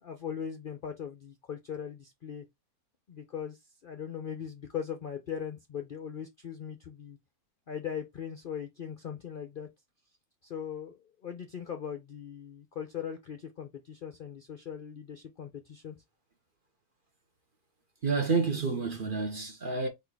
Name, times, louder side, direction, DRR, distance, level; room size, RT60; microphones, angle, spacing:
voice 1, 0.0-2.4 3.1-7.2 7.7-9.7 10.4-16.0, left 8 dB, 55° left, 0.6 m, -39 dB
voice 2, 18.0-19.9, right 4 dB, 40° right, 0.9 m, -29 dB
4.1 x 2.7 x 4.6 m
omnidirectional pair, 1.6 m